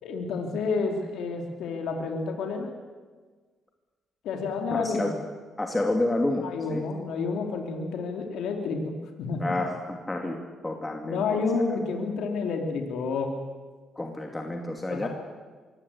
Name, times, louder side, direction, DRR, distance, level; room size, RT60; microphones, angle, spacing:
voice 1, 0.0-2.7 4.2-5.1 6.4-9.6 11.0-13.3 14.9-15.1, left 4 dB, 80° left, 3 dB, 2.8 m, -30 dB
voice 2, 4.7-5.1 5.6-6.8 9.4-10.4 10.6-11.4 14.0-15.1, left 2 dB, 15° left, 2 dB, 2.5 m, -29 dB
23.0 x 17.0 x 8.5 m, 1.4 s
cardioid pair, 90°, 0 cm